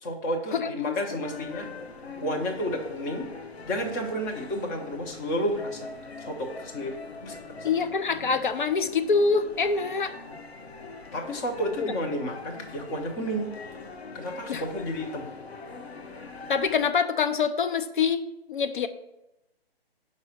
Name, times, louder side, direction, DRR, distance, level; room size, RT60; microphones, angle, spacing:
voice 1, 0.0-1.7 2.2-3.3 3.6-5.9 6.2-7.7 11.1-13.5 14.1-15.2, equal, 20° left, 2 dB, 0.8 m, -31 dB
voice 2, 0.5-0.9 7.6-10.1 11.8-11.9 14.5-14.6 16.5-18.9, left 5 dB, 55° left, 9 dB, 0.6 m, -25 dB
sound 1, 1.2-16.9, left 4 dB, 90° left, 1.0 m, -42 dB
5.5 x 4.8 x 6.4 m, 0.92 s
figure-of-eight pair, 145°, 31 cm